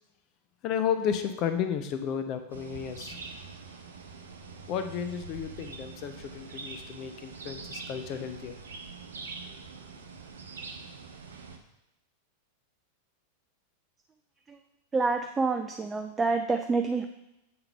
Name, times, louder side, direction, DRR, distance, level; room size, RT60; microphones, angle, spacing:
voice 1, 0.6-3.2 4.7-8.5, left 8 dB, 40° left, 7 dB, 0.6 m, -32 dB
sound 1, 2.5-11.6, right 4 dB, 70° right, 0.7 m, -44 dB
voice 2, 14.9-17.1, right 4 dB, 15° right, 6 dB, 0.4 m, -27 dB
7.6 x 3.9 x 5.6 m, 0.89 s
figure-of-eight pair, 90°, 0 cm